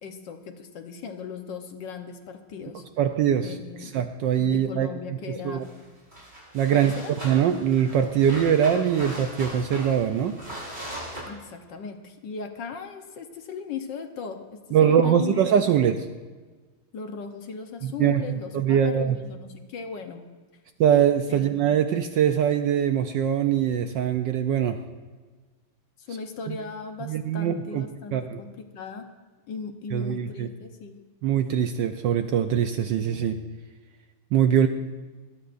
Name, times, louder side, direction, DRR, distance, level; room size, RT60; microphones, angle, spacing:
voice 1, 0.0-2.8 3.4-3.9 4.4-5.6 6.7-7.2 11.2-15.4 15.7-15.8 16.9-20.3 21.3-21.5 26.0-29.1 29.5-31.0, left 5 dB, 60° left, 6 dB, 1.5 m, -38 dB
voice 2, 3.0-3.5 3.8-4.9 5.4-5.6 6.5-6.9 7.2-10.4 14.7-16.0 17.8-18.2 18.5-19.2 20.8-24.8 26.5-26.6 27.1-27.9 28.1-28.4 29.9-30.5 31.2-33.4 34.3-34.7, right 9 dB, 70° right, 7 dB, 1.1 m, -22 dB
sound 1, 5.6-5.8 6.1-11.2, right 1 dB, 25° right, 5.6 m, -39 dB
22.5 x 21.0 x 2.6 m, 1.4 s
omnidirectional pair, 2.4 m